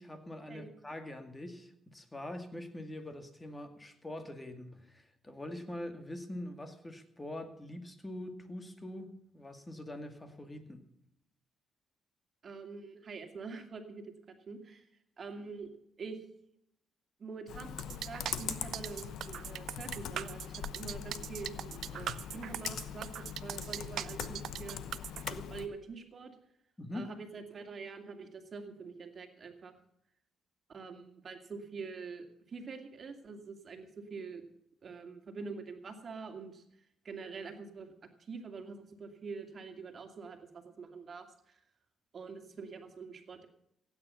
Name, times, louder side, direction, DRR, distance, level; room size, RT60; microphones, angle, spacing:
voice 1, 0.0-10.9 26.8-27.1, left 1 dB, 15° left, 7 dB, 2.1 m, -44 dB
voice 2, 12.4-14.0 14.5-14.9 15.2-15.7 16.0-16.2 17.2-26.3 26.9-29.8 30.7-34.4 34.8-36.6 37.0-37.9 38.3-41.6 42.1-43.5, right 4 dB, 45° right, 5 dB, 2.4 m, -45 dB
Computer keyboard, 17.5-25.7, left 9 dB, 80° left, 0.9 m, -42 dB
sound 1, 17.8-25.3, right 10 dB, 70° right, 0.5 m, -41 dB
16.0 x 9.1 x 7.0 m, 0.76 s
cardioid pair, 90°, 0 cm